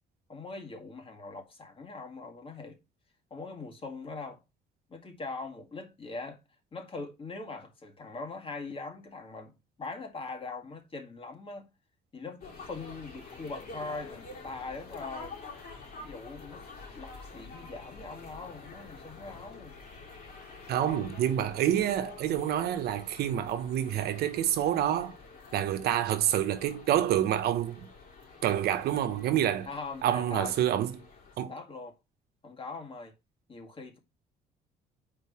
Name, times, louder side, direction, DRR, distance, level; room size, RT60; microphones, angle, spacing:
voice 1, 0.3-2.8 3.3-4.4 4.9-6.4 6.7-9.5 9.8-11.7 12.1-15.4 15.8-16.6 16.9-19.8 29.7-30.5 31.5-32.0 32.4-33.1 33.5-34.0, left 3 dB, 30° left, 1.8 m, -41 dB
sound 1, 12.4-31.3, left 4 dB, 55° left, 3.0 m, -48 dB
voice 2, 20.7-25.2 25.5-27.9 28.4-29.7 30.0-30.9 31.4-31.5, right 11 dB, 70° right, 1.1 m, -27 dB
4.8 x 4.6 x 5.6 m
cardioid pair, 110°, 17 cm